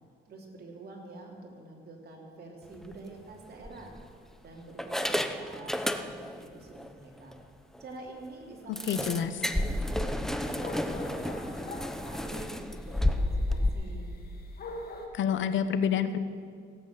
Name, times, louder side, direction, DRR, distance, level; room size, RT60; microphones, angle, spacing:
voice 1, 0.2-3.9 4.4-7.4 7.8-9.1 9.4-14.1, right 2 dB, 50° right, -1 dB, 3.3 m, -47 dB
sound 1, 2.7-3.0 3.6-4.3 4.8-6.4 6.8-6.9 7.3-7.4 7.7-7.8 8.8-13.7, left 1 dB, ahead, 0.8 m, -31 dB
voice 2, 8.9-9.3 15.1-16.2, left 8 dB, 70° left, 11 dB, 0.9 m, -27 dB
sound 2, 9.2-15.1, left 2 dB, 50° left, 1.9 m, -45 dB
17.0 x 8.2 x 6.8 m, 2.3 s
cardioid pair, 90°, 20 cm